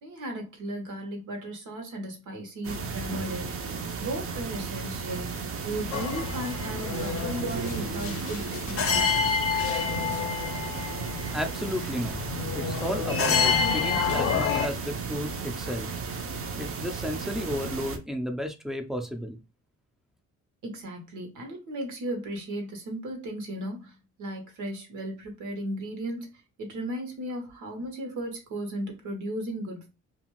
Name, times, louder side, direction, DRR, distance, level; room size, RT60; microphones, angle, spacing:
voice 1, 0.0-9.4 20.6-26.3 26.6-29.9, right 1 dB, 85° right, 3 dB, 1.1 m, -36 dB
sound 1, 2.6-18.0, right 5 dB, 50° right, 0.6 m, -34 dB
sound 2, 5.9-14.7, left 6 dB, 50° left, 0.6 m, -28 dB
voice 2, 11.3-12.2 12.5-15.9 16.6-19.4, equal, ahead, 5 dB, 0.4 m, -33 dB
2.5 x 2.3 x 3.0 m, 0.28 s
cardioid pair, 90°, 30 cm